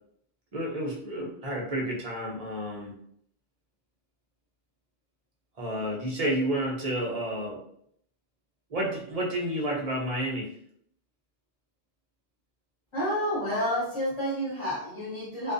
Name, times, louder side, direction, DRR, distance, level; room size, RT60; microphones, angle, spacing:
voice 1, 0.5-2.9 5.6-7.6 8.7-10.5, right 1 dB, 40° right, -2 dB, 0.7 m, -30 dB
voice 2, 12.9-15.5, equal, 30° left, -10 dB, 1.1 m, -29 dB
2.3 x 2.3 x 2.6 m, 0.68 s
omnidirectional pair, 1.1 m